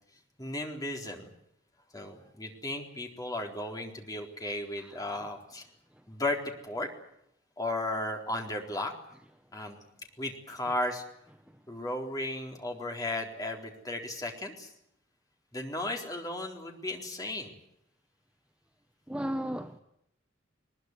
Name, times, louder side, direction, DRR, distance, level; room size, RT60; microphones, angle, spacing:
voice 1, 0.4-1.3 1.9-5.6 6.1-6.9 7.6-8.9 9.5-9.8 10.2-11.0 11.7-14.7 15.5-17.5, left 1 dB, 20° left, 2 dB, 4.0 m, -35 dB
voice 2, 19.1-19.8, equal, 5° right, 7 dB, 0.9 m, -34 dB
21.0 x 21.0 x 9.5 m, 0.77 s
head